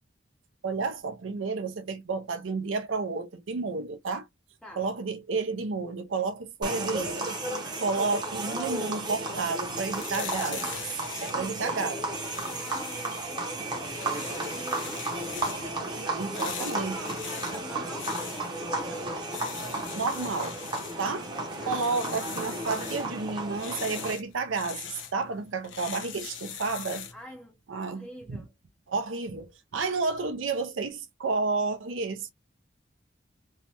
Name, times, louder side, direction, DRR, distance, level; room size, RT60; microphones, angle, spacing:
voice 1, 0.6-4.3 4.8-7.4 7.8-10.7 11.2-12.0 16.1-17.0 19.9-20.6 21.0-21.3 21.7-27.1 27.7-28.4 28.9-32.3, right 4 dB, 80° right, 0.6 m, -31 dB
sound 1, 6.6-24.1, right 2 dB, 20° right, 0.7 m, -33 dB
sound 2, 9.6-27.2, left 9 dB, 70° left, 0.6 m, -42 dB
voice 2, 10.0-10.8 11.3-15.8 16.3-19.1 21.6-21.9 27.1-28.5, equal, 5° left, 0.4 m, -46 dB
3.1 x 2.1 x 2.8 m
head